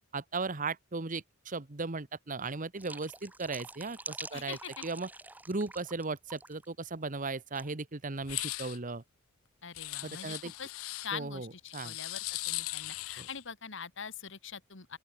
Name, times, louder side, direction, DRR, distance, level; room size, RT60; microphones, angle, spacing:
voice 1, 0.1-5.1 5.5-9.0 10.0-10.5 11.1-12.0 13.2-13.3, right 3 dB, 40° right, 1.2 m, -37 dB
sound 1, 2.7-6.0 6.3-6.7 7.5-7.7, right 2 dB, 10° right, 0.8 m, -46 dB
voice 2, 4.3-4.8 9.6-10.7 11.0-15.0, left 6 dB, 60° left, 2.0 m, -43 dB
sound 2, 8.2-8.8 9.8-11.1 11.7-13.4, left 20 dB, 80° left, 0.4 m, -38 dB
open air
head